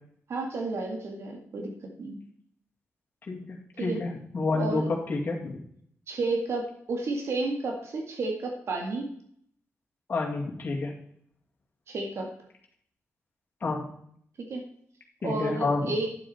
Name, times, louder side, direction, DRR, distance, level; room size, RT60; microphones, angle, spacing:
voice 1, 0.3-1.7 2.0-2.2 3.8-4.0 4.6-4.9 6.1-9.1 11.9-12.3 14.4-14.6 15.2-16.1, right 3 dB, 65° right, 2 dB, 1.9 m, -31 dB
voice 2, 3.3-4.1 4.3-5.6 10.1-10.9 13.6-13.8 15.2-15.9, left 3 dB, 40° left, -3 dB, 2.3 m, -29 dB
10.5 x 7.5 x 4.2 m, 0.64 s
wide cardioid pair, 150°, 5 cm